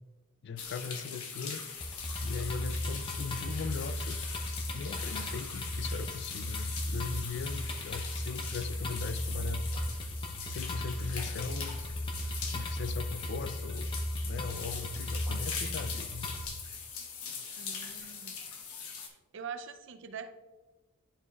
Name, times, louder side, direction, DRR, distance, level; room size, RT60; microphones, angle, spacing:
voice 1, 0.4-1.6 2.2-4.2 4.7-9.6 10.5-11.7 12.5-13.9 14.2-16.3, left 5 dB, 55° left, 12 dB, 0.3 m, -39 dB
sound 1, 0.6-19.1, left 6 dB, 85° left, 1.0 m, -41 dB
sound 2, 1.8-16.5, left 1 dB, 25° left, 0.7 m, -36 dB
voice 2, 17.6-18.4 19.0-20.3, right 6 dB, 55° right, 9 dB, 0.5 m, -44 dB
10.5 x 4.9 x 2.4 m, 1.2 s
head